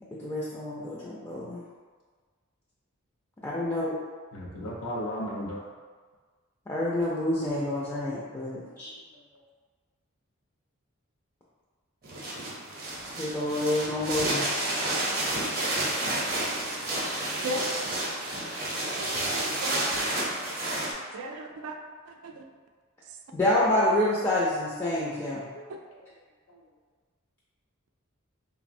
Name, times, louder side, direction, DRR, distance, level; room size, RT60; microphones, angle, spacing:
voice 1, 0.2-1.6 3.4-4.0 6.7-8.9 13.2-14.5 23.3-25.4, left 1 dB, 15° left, -7 dB, 0.3 m, -27 dB
voice 2, 4.3-5.6 8.8-9.2 25.1-25.6 26.5-26.6, equal, 90° left, -4 dB, 0.5 m, -37 dB
sound 1, 12.0-20.9, right 1 dB, 45° right, 0.6 m, -30 dB
voice 3, 17.4-18.0 18.9-20.0 21.1-21.8 22.1-22.5 23.1-23.2 25.7-25.8, right 1 dB, 85° right, 3 dB, 0.3 m, -37 dB
3.2 x 2.0 x 2.5 m, 1.5 s
head